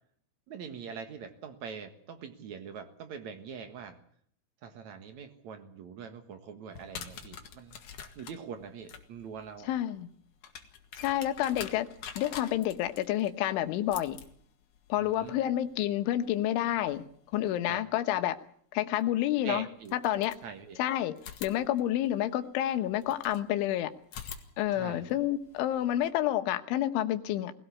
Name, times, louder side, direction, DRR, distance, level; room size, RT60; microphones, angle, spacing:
voice 1, 0.5-4.0 4.6-7.8 8.2-9.7 15.0-15.4 17.7-17.8 19.4-20.0 20.4-20.8 24.7-25.2, right 6 dB, 70° right, 8 dB, 1.7 m, -43 dB
sound 1, 6.7-17.5 19.0-19.1 19.8-20.8 21.2-23.4 24.0-26.1, left 7 dB, 55° left, 2.4 m, -48 dB
voice 2, 9.7-10.1 11.0-11.9 12.2-14.2 14.9-17.0 17.3-18.4 18.7-19.7 19.9-20.4 20.8-21.1 21.4-23.9 24.6-27.5, left 12 dB, 75° left, 10 dB, 3.5 m, -29 dB
21.0 x 17.0 x 8.4 m, 0.63 s
omnidirectional pair, 5.8 m